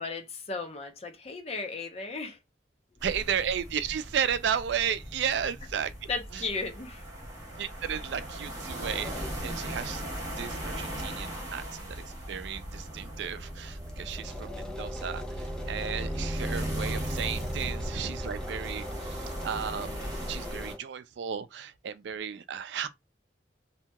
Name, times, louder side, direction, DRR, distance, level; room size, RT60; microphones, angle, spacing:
voice 1, 0.0-2.4 6.1-7.0, left 4 dB, 35° left, 0.7 m, -35 dB
sound 1, 3.0-20.7, right 1 dB, 20° right, 1.0 m, -37 dB
voice 2, 3.0-5.9 6.3-6.5 7.6-10.1 10.4-22.9, right 8 dB, 75° right, 0.4 m, -34 dB
sound 2, 8.9-9.4 10.2-10.3 10.6-10.7 11.0-11.1 11.3-11.4 12.1-12.2 12.4-12.5 12.9-13.0 13.2-20.8, left 1 dB, 5° left, 0.4 m, -43 dB
2.8 x 2.7 x 2.2 m
head